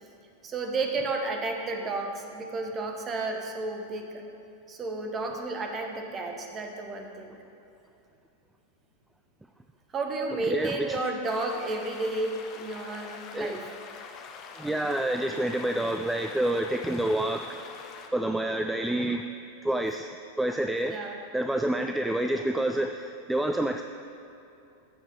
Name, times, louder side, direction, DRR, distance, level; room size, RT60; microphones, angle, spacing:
voice 1, 0.4-4.2 4.7-7.4 9.9-13.7 20.9-21.2, right 3 dB, 25° right, 4 dB, 1.2 m, -32 dB
voice 2, 10.5-10.9 13.3-13.6 14.6-17.7 18.1-19.3 19.6-20.1 20.4-21.0 21.3-23.8, right 1 dB, 5° right, 5 dB, 0.4 m, -28 dB
sound 1, 11.2-18.1, left 6 dB, 35° left, 0.9 m, -45 dB
14.5 x 5.0 x 5.5 m, 2.8 s
figure-of-eight pair, 90°, 0 cm